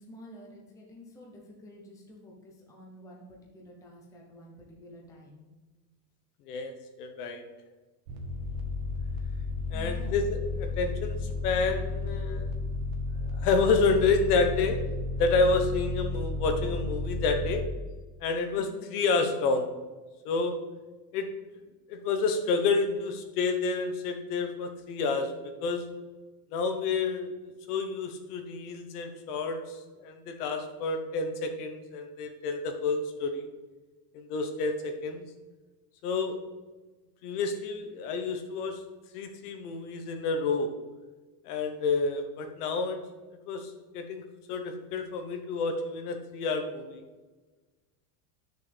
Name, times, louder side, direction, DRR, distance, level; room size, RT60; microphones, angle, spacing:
voice 1, 0.0-5.5 9.7-10.2 18.6-18.9, equal, 5° left, -2 dB, 0.7 m, -50 dB
voice 2, 6.4-7.4 9.7-12.8 13.3-14.8 15.2-17.6 18.2-19.7 20.2-20.6 21.1-21.3 21.9-25.3 25.6-25.9 26.5-33.5 34.1-35.3 36.0-36.4 37.2-38.8 39.1-40.7 41.4-43.0 43.5-44.2 44.5-47.0, left 4 dB, 70° left, 6 dB, 1.3 m, -29 dB
sound 1, 8.1-17.6, left 3 dB, 55° right, 1.4 m, -33 dB
10.5 x 6.6 x 3.4 m, 1.2 s
supercardioid pair, 175°, 47 cm